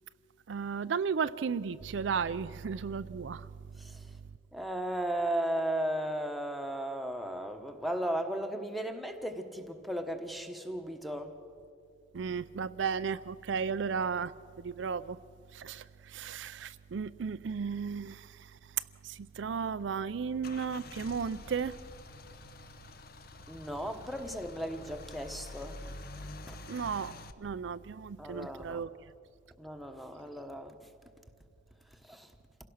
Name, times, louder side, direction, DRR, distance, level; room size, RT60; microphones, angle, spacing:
voice 1, 0.5-3.5 12.1-15.2 15.5-18.5 19.0-21.8 26.7-28.9, right 6 dB, 70° right, 0.4 m, -34 dB
voice 2, 4.5-11.3 23.5-25.9 26.5-26.6 28.2-28.8 29.6-30.7 32.1-32.3, right 1 dB, ahead, 1.1 m, -35 dB
Car / Engine starting / Idling, 19.9-27.3, left 2 dB, 55° left, 0.9 m, -47 dB
27.0 x 17.0 x 6.3 m
head